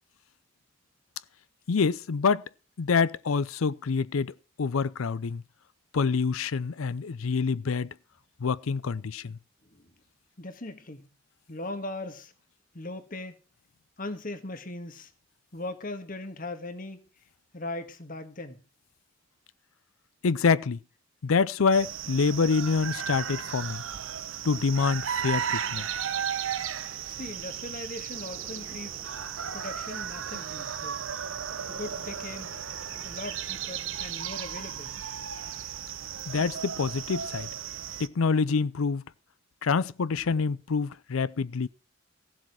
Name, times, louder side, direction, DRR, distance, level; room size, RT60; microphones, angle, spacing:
voice 1, 1.7-2.4 2.8-4.3 4.6-5.4 5.9-7.9 8.4-9.4 20.2-20.8 21.2-23.8 24.4-25.8 36.3-37.5 38.0-39.0 39.6-41.7, left 5 dB, 85° left, 0.5 m, -26 dB
voice 2, 10.4-11.1 11.5-12.3 12.7-13.4 14.0-15.1 15.5-17.0 17.5-18.6 27.1-29.1 29.5-31.0 31.7-32.5 33.0-34.9 40.1-40.2, left 2 dB, 40° left, 1.6 m, -39 dB
sound 1, 21.7-38.1, right 8 dB, 70° right, 0.8 m, -35 dB
sound 2, 28.1-34.1, equal, 5° right, 1.9 m, -52 dB
15.5 x 7.4 x 6.2 m
head